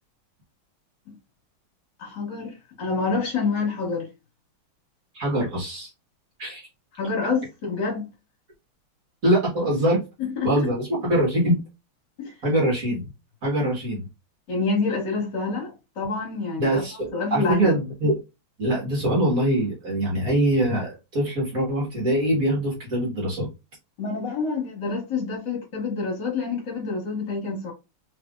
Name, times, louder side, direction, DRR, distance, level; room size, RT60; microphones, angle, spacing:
voice 1, 2.0-4.1 7.0-8.1 10.2-10.5 12.2-12.3 14.5-16.8 17.1-17.7 24.0-27.7, left 4 dB, 55° left, 1.9 m, -27 dB
voice 2, 5.1-5.9 6.4-6.7 9.2-10.0 10.4-11.6 12.4-13.1 13.4-14.1 16.6-18.2 18.6-23.5, right 1 dB, 45° right, 1.8 m, -23 dB
3.8 x 3.4 x 2.4 m
omnidirectional pair, 2.3 m